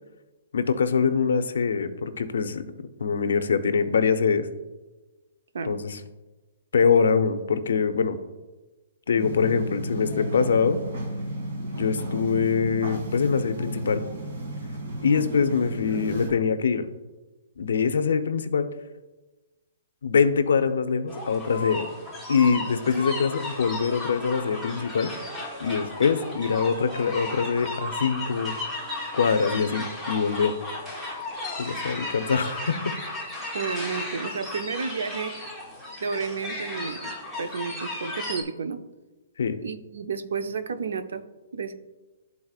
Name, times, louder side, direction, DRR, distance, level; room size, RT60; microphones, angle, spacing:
voice 1, 0.5-2.6 3.0-4.5 5.6-6.0 6.7-8.2 9.1-10.8 11.8-14.0 15.0-16.9 17.6-18.7 20.0-21.9 22.3-25.1 25.6-28.6 29.1-30.5 31.6-32.8 39.4-39.6, left 5 dB, 75° left, 9 dB, 0.6 m, -24 dB
sound 1, 9.2-16.3, right 1 dB, 45° right, 1.7 m, -33 dB
sound 2, 21.1-38.4, left 2 dB, 5° right, 0.7 m, -35 dB
voice 2, 33.5-35.3 36.0-37.1 37.4-38.8 39.6-41.2 41.5-41.7, right 5 dB, 75° right, 9 dB, 0.6 m, -31 dB
12.5 x 4.1 x 2.4 m, 1.2 s
hypercardioid pair, 180°, 0 cm